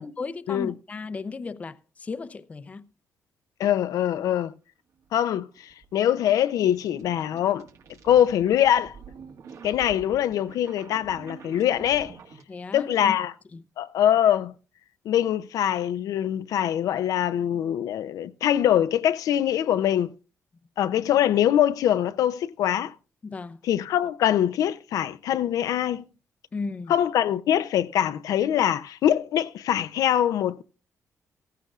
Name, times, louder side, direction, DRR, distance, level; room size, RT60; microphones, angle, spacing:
voice 1, 0.0-2.9 12.5-13.2 13.5-13.6 23.2-23.6 26.5-26.9, left 4 dB, 25° left, 0.5 m, -35 dB
voice 2, 3.6-4.5 5.1-7.7 8.0-8.9 9.6-12.1 12.7-13.3 13.8-14.5 15.1-20.1 20.8-22.9 23.6-26.0 26.9-30.6, left 10 dB, 80° left, 0.5 m, -23 dB
sound 1, 5.0-12.4, right 6 dB, 65° right, 1.7 m, -47 dB
16.0 x 14.5 x 2.4 m
cardioid pair, 155°, 6 cm